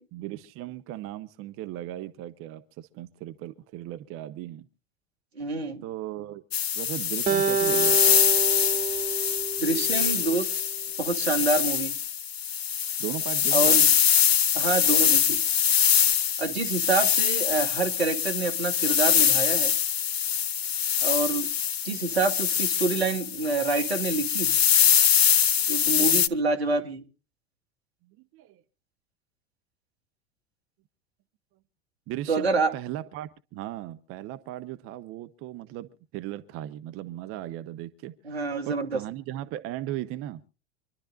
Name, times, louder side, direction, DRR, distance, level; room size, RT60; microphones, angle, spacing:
voice 1, 0.1-4.7 5.8-6.4 6.7-8.2 13.0-13.9 25.9-26.3 28.1-28.6 32.1-40.4, right 14 dB, 45° right, 1.1 m, -37 dB
voice 2, 5.4-5.8 9.6-10.5 11.0-11.9 13.5-13.8 14.5-15.4 16.4-19.7 21.0-21.5 21.8-24.6 25.7-27.0 32.3-32.7 38.2-39.0, right 3 dB, 90° right, 2.1 m, -27 dB
sound 1, 6.5-26.3, left 8 dB, 80° left, 0.8 m, -23 dB
Acoustic guitar, 7.3-10.6, right 6 dB, 25° right, 1.6 m, -29 dB
27.0 x 12.0 x 2.6 m
hypercardioid pair, 85°, 31 cm